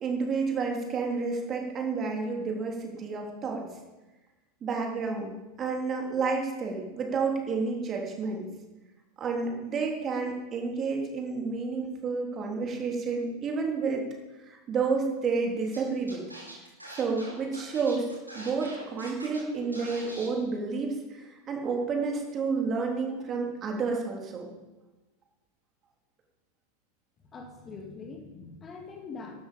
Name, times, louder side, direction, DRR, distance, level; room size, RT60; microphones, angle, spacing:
voice 1, 0.0-3.6 4.6-8.5 9.2-14.0 14.4-16.2 16.9-18.1 18.3-24.5, right 4 dB, 25° right, 0 dB, 3.6 m, -30 dB
Scratching (performance technique), 15.7-15.8 16.1-19.4 19.7-20.3, right 1 dB, 85° right, 4.1 m, -44 dB
voice 2, 27.3-29.4, left 4 dB, 25° left, 2 dB, 2.4 m, -43 dB
14.5 x 12.5 x 5.4 m, 1.1 s
figure-of-eight pair, 90°, 0 cm